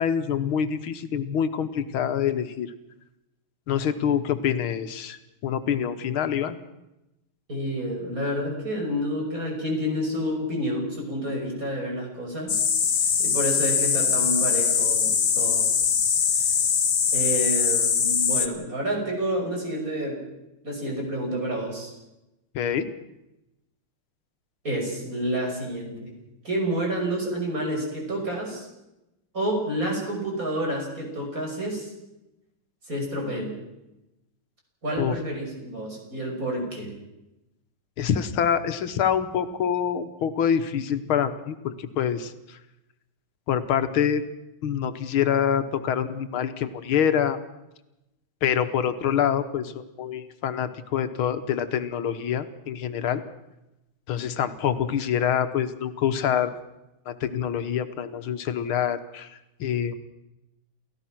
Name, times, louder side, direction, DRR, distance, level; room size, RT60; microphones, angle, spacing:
voice 1, 0.0-2.7 3.7-6.6 22.6-22.9 35.0-35.1 38.0-42.3 43.5-44.2 44.6-47.4 48.4-53.2 54.1-56.5 57.1-59.3 59.6-59.9, left 8 dB, 90° left, 10 dB, 2.0 m, -26 dB
voice 2, 7.5-12.6 13.0-15.7 17.1-20.2 20.6-21.9 24.6-26.1 26.4-28.7 29.3-31.9 32.9-33.6 34.8-36.9, right 1 dB, 40° right, 0 dB, 6.4 m, -29 dB
sound 1, 12.5-18.5, left 7 dB, 70° left, 2.5 m, -22 dB
29.0 x 15.0 x 6.1 m, 0.93 s
omnidirectional pair, 2.2 m